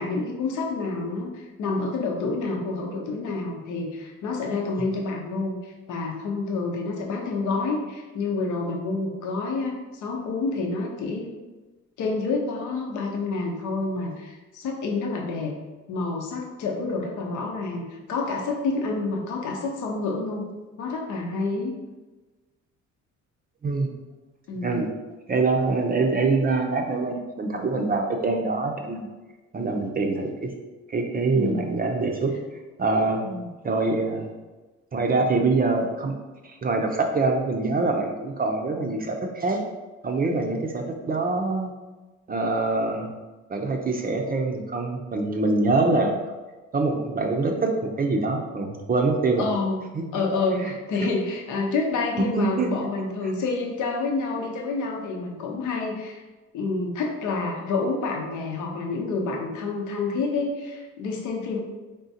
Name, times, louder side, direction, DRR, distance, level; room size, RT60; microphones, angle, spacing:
voice 1, 0.0-11.3 12.0-15.5 15.9-20.5 20.8-21.8 24.5-24.8 31.3-31.8 33.2-33.5 49.4-49.8 50.1-56.2 56.5-61.6, left 3 dB, 75° left, 0 dB, 0.8 m, -28 dB
voice 2, 25.3-29.1 29.5-30.5 30.9-32.4 32.8-33.2 33.6-34.3 34.9-36.1 36.4-39.6 40.0-41.7 42.3-43.1 43.5-46.2 46.7-47.7 48.0-49.5 49.9-50.3 50.6-50.7 51.0-51.1 52.3-52.7 53.2-53.3, right 3 dB, 30° right, 2 dB, 0.5 m, -24 dB
3.8 x 3.4 x 2.8 m, 1.2 s
cardioid pair, 90°, 30 cm